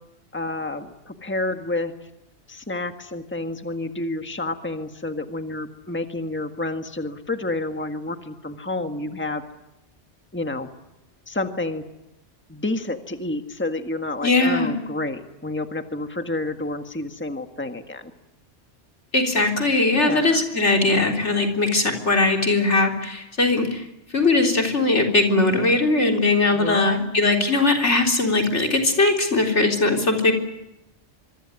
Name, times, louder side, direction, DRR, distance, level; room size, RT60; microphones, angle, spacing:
voice 1, 0.3-1.9 2.5-9.4 10.3-10.7 11.3-11.8 12.5-18.1 19.9-20.4 26.5-27.0, left 2 dB, 10° left, 7 dB, 1.6 m, -29 dB
voice 2, 14.2-14.7 19.1-23.8 24.1-30.3, left 2 dB, 75° left, 3 dB, 4.0 m, -20 dB
26.0 x 23.5 x 9.8 m, 0.93 s
omnidirectional pair, 1.2 m